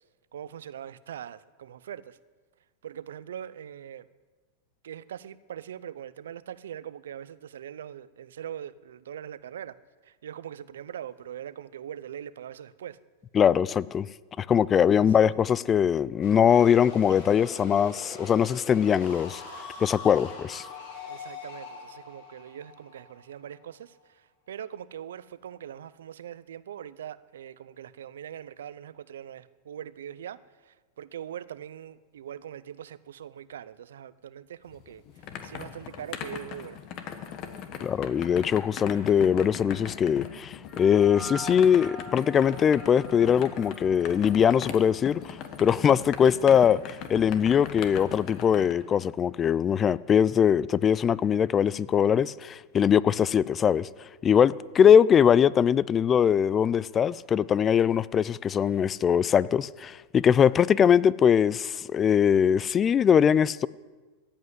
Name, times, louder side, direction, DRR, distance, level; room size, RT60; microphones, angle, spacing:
voice 1, 0.3-2.2 2.8-4.1 4.8-9.8 10.0-13.0 14.7-15.4 16.5-16.7 17.1-17.3 21.1-36.8, right 10 dB, 80° right, 0.5 m, -42 dB
voice 2, 13.3-14.1 14.4-19.4 19.8-20.7 37.8-53.9 54.2-63.7, left 8 dB, 25° left, 0.4 m, -22 dB
sound 1, 16.2-23.9, left 4 dB, 70° left, 5.3 m, -43 dB
sound 2, 34.7-48.7, left 8 dB, 45° left, 1.4 m, -39 dB
sound 3, 40.6-45.3, equal, ahead, 1.6 m, -44 dB
15.5 x 5.5 x 9.7 m
hypercardioid pair, 110°, 0 cm